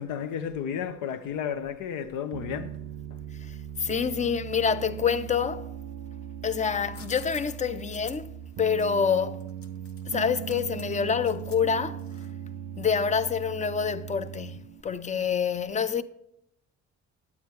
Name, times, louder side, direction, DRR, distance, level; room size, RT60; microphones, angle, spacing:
voice 1, 0.0-2.8, left 8 dB, 90° left, 0.7 m, -32 dB
Piano, 2.3-14.8, right 9 dB, 70° right, 0.5 m, -39 dB
voice 2, 3.4-5.7 6.4-8.3 8.6-9.4 10.1-12.0 12.8-16.0, left 6 dB, 25° left, 0.4 m, -27 dB
sound 1, 6.7-12.5, left 5 dB, 50° left, 0.9 m, -49 dB
9.5 x 8.5 x 3.2 m
cardioid pair, 90°, 30 cm